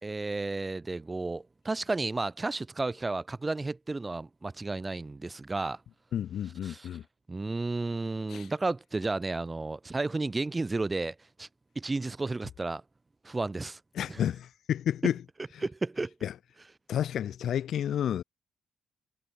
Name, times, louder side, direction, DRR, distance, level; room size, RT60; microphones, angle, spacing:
voice 1, 0.0-5.8 6.6-6.9 7.3-11.5 11.8-12.8 13.2-13.8 14.1-14.2 15.6-16.1, right 3 dB, 20° right, 2.0 m, -32 dB
voice 2, 6.1-7.0 8.3-8.5 13.9-15.2 16.2-16.3 16.9-18.2, left 10 dB, 65° left, 1.0 m, -30 dB
cardioid pair, 90°, 0 cm